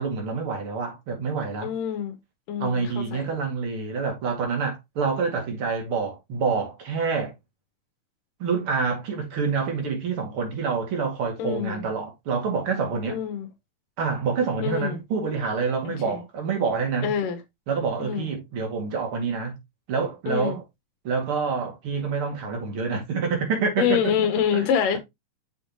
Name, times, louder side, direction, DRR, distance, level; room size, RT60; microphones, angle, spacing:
voice 1, 0.0-1.7 2.6-7.3 8.4-13.2 14.0-17.1 17.7-19.6 19.9-20.6 21.0-24.1 24.5-24.7, right 5 dB, 45° right, 2.6 m, -27 dB
voice 2, 1.6-2.1 2.5-3.3 11.4-11.9 13.1-13.5 14.6-15.0 15.9-16.2 17.0-17.4 18.0-18.3 20.3-20.6 23.8-25.0, left 8 dB, 85° left, 2.6 m, -26 dB
6.5 x 6.0 x 2.9 m
omnidirectional pair, 3.8 m